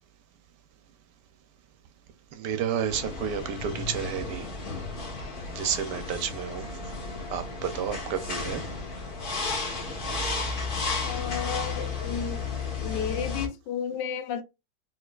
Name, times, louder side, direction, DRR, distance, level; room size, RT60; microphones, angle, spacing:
voice 1, 2.3-4.5 5.5-6.7 7.3-8.6, right 8 dB, 75° right, 1.1 m, -31 dB
sound 1, 2.9-13.5, left 4 dB, 35° left, 1.0 m, -33 dB
voice 2, 11.0-12.5 12.8-14.4, left 7 dB, 75° left, 1.2 m, -32 dB
4.6 x 3.8 x 2.3 m
omnidirectional pair, 2.1 m